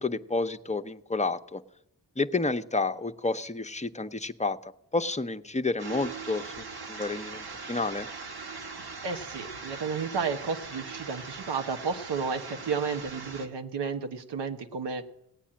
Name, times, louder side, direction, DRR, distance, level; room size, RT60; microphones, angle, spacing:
voice 1, 0.0-1.6 2.2-8.1, left 3 dB, 15° left, 8 dB, 0.9 m, -30 dB
sound 1, 5.8-13.5, right 4 dB, 65° right, 2.0 m, -41 dB
voice 2, 9.0-15.0, right 5 dB, 85° right, 5 dB, 1.2 m, -32 dB
17.5 x 9.0 x 8.7 m, 0.81 s
cardioid pair, 50°, 41 cm